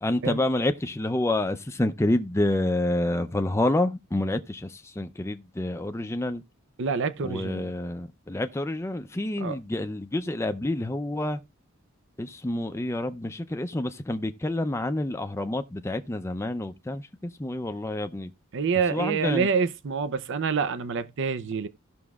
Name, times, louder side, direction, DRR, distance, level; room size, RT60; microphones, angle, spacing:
voice 1, 0.0-6.4 7.2-11.4 12.2-18.3 18.9-19.5, left 1 dB, 15° left, 0.5 m, -28 dB
voice 2, 6.8-7.7 9.4-9.6 18.5-21.7, right 5 dB, 60° right, 0.6 m, -27 dB
17.0 x 6.1 x 2.3 m
head